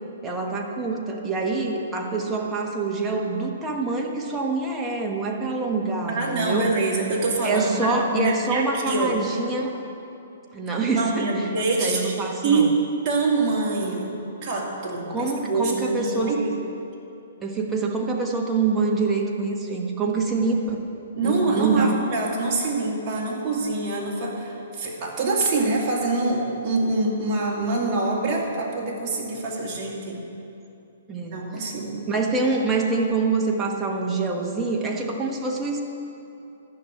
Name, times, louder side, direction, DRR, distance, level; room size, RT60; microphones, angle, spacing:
voice 1, 0.2-6.7 7.4-9.7 10.5-11.5 11.8-12.7 15.1-16.3 17.4-20.8 21.2-22.0 31.1-31.4 32.1-35.8, right 3 dB, 10° right, 0 dB, 1.2 m, -25 dB
voice 2, 6.1-9.2 11.0-12.1 12.4-12.8 13.0-14.1 14.4-16.6 21.1-30.2 31.3-32.0, right 3 dB, 25° right, -4 dB, 2.5 m, -25 dB
12.0 x 6.3 x 9.2 m, 2.8 s
hypercardioid pair, 150°, 0 cm